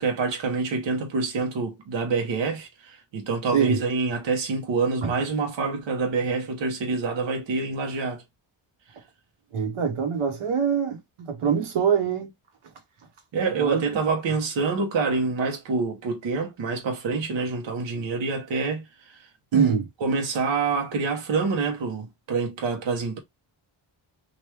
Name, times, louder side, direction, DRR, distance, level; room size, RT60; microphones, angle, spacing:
voice 1, 0.0-8.2 13.3-19.7 20.0-23.2, right 4 dB, 65° right, 1.0 m, -27 dB
voice 2, 9.5-12.3 13.6-13.8 19.5-19.9, right 7 dB, 85° right, 1.1 m, -24 dB
3.1 x 2.5 x 3.3 m
wide cardioid pair, 115°, 49 cm